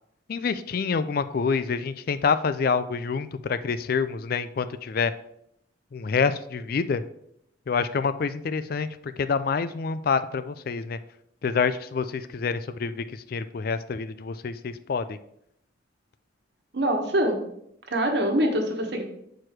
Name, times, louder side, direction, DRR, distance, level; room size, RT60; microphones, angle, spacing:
voice 1, 0.3-5.1 5.9-7.0 7.7-11.0 11.4-15.2, left 5 dB, 50° left, 13 dB, 0.4 m, -27 dB
voice 2, 16.7-17.4 17.9-19.0, right 1 dB, 55° right, 3 dB, 1.3 m, -24 dB
7.7 x 4.7 x 4.6 m, 0.74 s
head